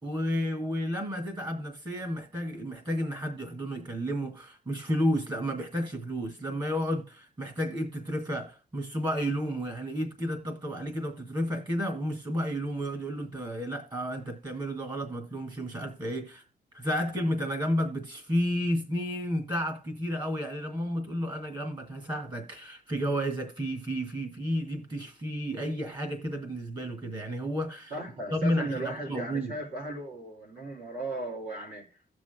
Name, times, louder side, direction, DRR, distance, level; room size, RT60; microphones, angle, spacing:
voice 1, 0.0-16.4 16.7-27.9 28.3-29.5, equal, 30° right, 2.0 m, -32 dB
voice 2, 27.9-32.2, right 2 dB, 70° right, 4.1 m, -37 dB
16.5 x 6.2 x 2.2 m
wide cardioid pair, 170°, 16 cm